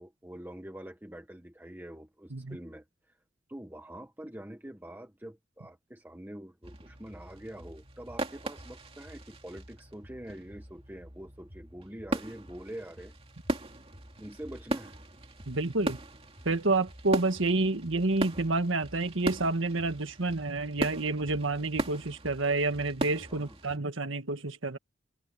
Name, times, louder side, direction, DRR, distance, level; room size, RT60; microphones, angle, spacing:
voice 1, 0.0-3.2 3.5-13.1 14.2-15.0 23.3-23.6, right 1 dB, 10° right, 1.1 m, -45 dB
sound 1, 6.6-23.8, right 1 dB, 30° right, 2.5 m, -39 dB
voice 2, 15.5-16.0 16.4-24.8, right 2 dB, 75° right, 1.7 m, -29 dB
head